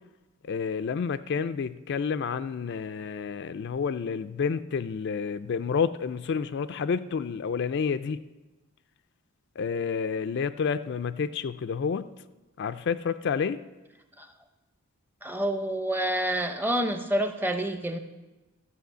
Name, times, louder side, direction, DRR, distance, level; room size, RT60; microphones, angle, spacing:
voice 1, 0.4-8.2 9.6-12.1 12.6-13.6, left 6 dB, 55° left, 11 dB, 0.4 m, -29 dB
voice 2, 15.2-18.0, right 1 dB, 10° right, 8 dB, 0.7 m, -28 dB
13.0 x 5.6 x 8.0 m, 1.1 s
head